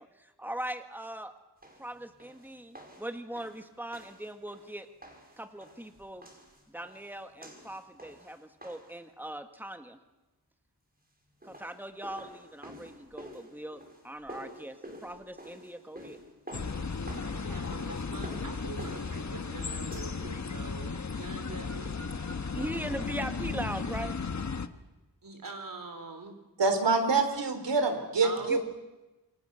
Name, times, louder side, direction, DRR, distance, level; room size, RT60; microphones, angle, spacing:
voice 1, 0.0-1.3 1.8-4.9 5.4-6.3 6.7-10.0 11.4-16.2 22.4-24.2 28.5-28.6, right 1 dB, 5° right, 6 dB, 2.0 m, -40 dB
sound 1, 1.6-9.1 11.2-20.4, equal, 20° right, 5.7 m, -50 dB
sound 2, 16.5-24.7, left 4 dB, 45° left, 1.3 m, -35 dB
voice 2, 17.3-22.0 25.2-26.4 28.2-28.6, right 3 dB, 50° right, 5 dB, 4.4 m, -44 dB
voice 3, 26.6-28.6, right 4 dB, 90° right, 7 dB, 3.8 m, -26 dB
28.0 x 23.5 x 6.8 m, 1.1 s
wide cardioid pair, 70°, 41 cm